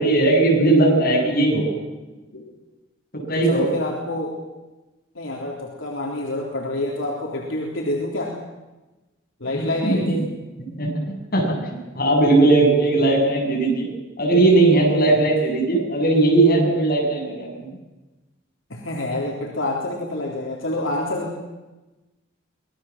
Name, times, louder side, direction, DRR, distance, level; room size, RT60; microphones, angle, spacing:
voice 1, 0.0-1.7 3.1-3.7 9.4-10.2 10.6-13.9 14.2-17.8, right 2 dB, 50° left, 0 dB, 7.9 m, -18 dB
voice 2, 3.5-4.4 5.1-8.3 9.4-10.0 15.1-15.2 18.7-21.4, left 2 dB, 75° left, -2 dB, 3.7 m, -27 dB
25.5 x 19.5 x 7.5 m, 1.1 s
head